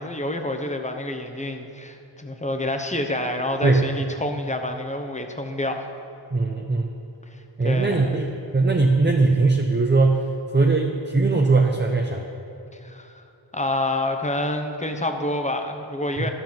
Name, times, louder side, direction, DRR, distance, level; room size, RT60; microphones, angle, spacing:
voice 1, 0.0-5.9 7.6-8.2 12.7-13.2 13.5-16.3, left 1 dB, 15° left, 5 dB, 0.9 m, -28 dB
voice 2, 6.3-6.9 7.6-10.3 10.5-12.2 16.2-16.3, right 3 dB, 25° right, 1 dB, 0.7 m, -20 dB
13.0 x 5.7 x 7.4 m, 2.9 s
wide cardioid pair, 70°, 47 cm